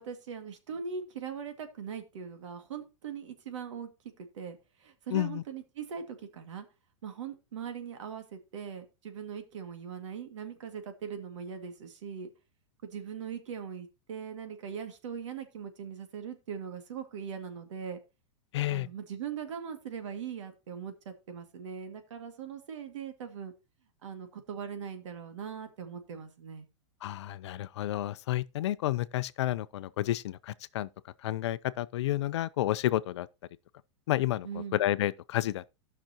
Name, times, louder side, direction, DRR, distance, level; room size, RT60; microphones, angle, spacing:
voice 1, 0.0-3.9 4.2-6.7 7.0-12.3 12.8-18.0 18.7-23.5 24.0-26.7 34.4-34.8, right 7 dB, 90° right, 2.0 m, -40 dB
voice 2, 5.1-5.4 18.5-18.9 27.0-30.9 31.2-33.3 34.1-35.8, left 14 dB, 70° left, 0.5 m, -30 dB
16.0 x 5.9 x 2.9 m
supercardioid pair, 175°, 15 cm